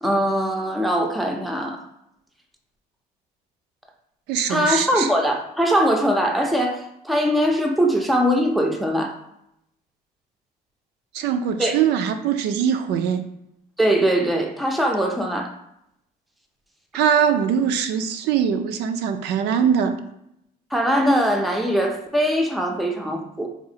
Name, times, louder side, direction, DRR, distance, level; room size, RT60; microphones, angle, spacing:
voice 1, 0.0-1.8 4.5-9.1 11.6-11.8 13.8-15.5 20.7-23.5, equal, ahead, 2 dB, 0.4 m, -21 dB
voice 2, 4.3-5.1 11.1-13.2 16.9-20.0, right 8 dB, 80° right, 8 dB, 0.4 m, -22 dB
4.1 x 2.4 x 2.7 m, 0.79 s
cardioid pair, 110°, 17 cm